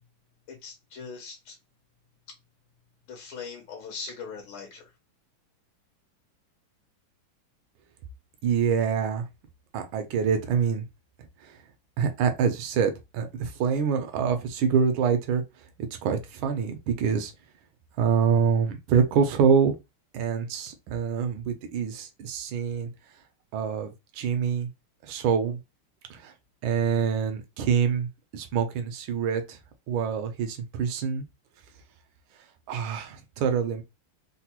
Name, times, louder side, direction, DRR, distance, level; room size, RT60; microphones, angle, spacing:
voice 1, 0.5-1.6 3.1-4.9, left 5 dB, 80° left, 1.5 m, -40 dB
voice 2, 8.4-9.2 9.7-10.8 11.4-11.5 12.0-15.4 16.0-17.3 18.0-19.8 20.1-22.9 23.5-23.9 24.2-24.7 25.1-25.6 26.1-26.3 26.6-28.1 28.3-29.6 29.9-31.2 32.7-33.8, right 6 dB, 80° right, 1.5 m, -25 dB
3.9 x 2.2 x 2.9 m
omnidirectional pair, 2.2 m